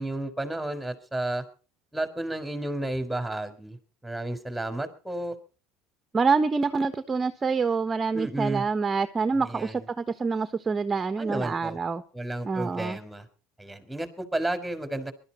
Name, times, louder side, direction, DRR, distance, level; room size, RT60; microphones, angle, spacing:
voice 1, 0.0-1.4 1.9-3.8 4.0-5.3 8.1-8.6 9.4-9.8 11.2-11.8 12.1-13.2 13.6-15.1, right 1 dB, 5° right, 10 dB, 4.2 m, -32 dB
voice 2, 6.1-12.0 12.4-13.0, right 4 dB, 25° right, 11 dB, 1.3 m, -26 dB
23.0 x 13.0 x 4.3 m, 0.38 s
hypercardioid pair, 80°, 0 cm